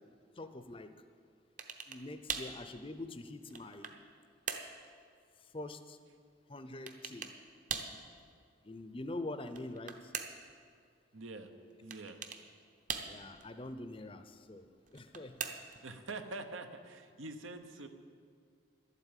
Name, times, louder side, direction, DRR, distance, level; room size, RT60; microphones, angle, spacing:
voice 1, 0.4-0.9 1.9-3.9 5.5-6.0 6.5-7.3 8.6-9.9 13.1-14.7 14.9-15.3, left 2 dB, 25° left, 10 dB, 0.6 m, -44 dB
sound 1, 1.6-2.0 2.3-2.6 3.2-4.0 4.5-4.8 6.9-7.4 7.7-8.0 9.4-10.5 11.9-12.4 12.9-13.4 14.9-15.8, right 6 dB, 40° right, 0.8 m, -41 dB
voice 2, 11.1-11.5 11.8-12.2 15.8-17.9, right 2 dB, 85° right, 8 dB, 1.0 m, -45 dB
12.0 x 8.1 x 9.0 m, 2.2 s
head